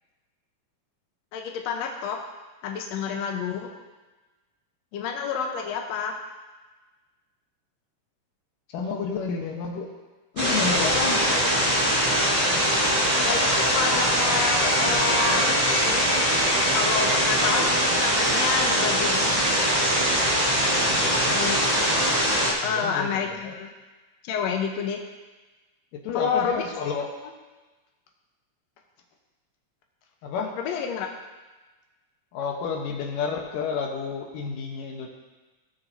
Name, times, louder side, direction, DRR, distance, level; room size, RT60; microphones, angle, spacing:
voice 1, 1.3-2.2 2.6-3.7 4.9-6.2 13.3-16.1 16.7-19.4 21.3-21.6 22.6-23.7 24.2-25.0 26.1-26.6 30.6-31.1, left 6 dB, 70° left, 2 dB, 1.9 m, -29 dB
voice 2, 8.7-9.9 10.3-11.3 20.9-21.4 22.6-23.6 25.9-27.2 30.2-30.5 32.3-35.1, left 5 dB, 85° left, 2 dB, 2.7 m, -30 dB
sound 1, 10.4-22.5, equal, 20° right, 1.3 m, -22 dB
17.5 x 6.7 x 2.7 m, 1.2 s
omnidirectional pair, 3.8 m